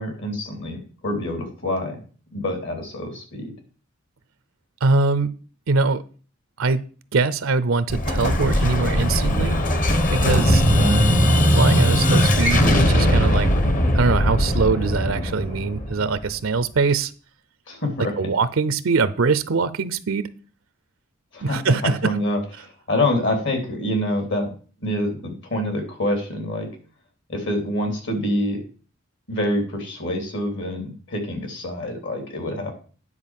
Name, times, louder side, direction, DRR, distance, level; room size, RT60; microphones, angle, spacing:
voice 1, 0.0-2.0 2.3-3.5 10.7-11.0 17.7-18.3 21.3-24.5 24.8-26.7 27.3-28.6 29.3-32.7, left 1 dB, 65° left, 3 dB, 3.1 m, -26 dB
voice 2, 4.8-5.3 5.7-6.0 6.6-6.8 7.1-9.6 10.1-10.6 11.5-13.5 13.9-17.1 18.2-20.3 21.4-22.2, right 4 dB, 75° right, 15 dB, 0.6 m, -22 dB
Explosion, 7.9-16.6, equal, 40° left, 1.2 m, -19 dB
9.8 x 4.6 x 7.3 m, 0.39 s
head